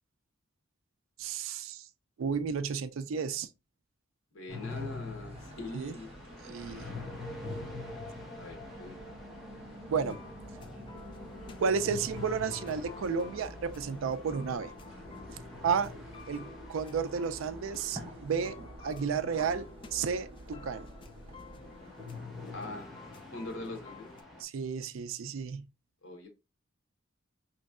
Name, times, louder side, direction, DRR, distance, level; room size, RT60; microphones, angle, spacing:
voice 1, 1.2-1.9 2.2-3.5 5.7-6.0 6.4-6.9 9.9-10.2 11.6-14.7 15.6-15.9 16.3-18.6 18.8-19.7 19.9-20.9 24.4-25.7, right 6 dB, 75° right, 0.4 m, -32 dB
voice 2, 4.3-6.1 6.7-7.3 8.4-9.0 15.9-16.0 22.5-22.9 23.3-24.1 26.0-26.3, left 2 dB, 80° left, 1.1 m, -43 dB
sound 1, 4.5-24.4, left 2 dB, ahead, 1.0 m, -45 dB
sound 2, 4.7-21.9, right 1 dB, 30° right, 0.9 m, -51 dB
sound 3, 9.9-24.2, left 3 dB, 25° left, 0.3 m, -52 dB
4.4 x 3.0 x 2.3 m
head